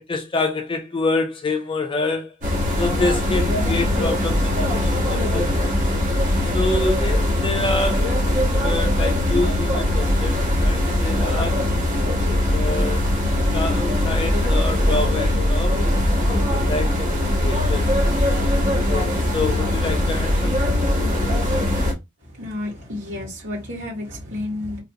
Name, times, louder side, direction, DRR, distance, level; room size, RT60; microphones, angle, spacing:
voice 1, 0.1-2.3 2.8-5.7 6.5-8.2 8.5-11.6 12.5-13.1 13.5-15.8 16.5-17.9 18.9-21.3, left 3 dB, 25° left, 0.4 m, -27 dB
sound 1, 2.4-21.9, left 1 dB, 40° right, 1.1 m, -21 dB
voice 2, 22.2-24.8, left 1 dB, 60° right, 2.1 m, -31 dB
3.3 x 2.5 x 2.8 m
head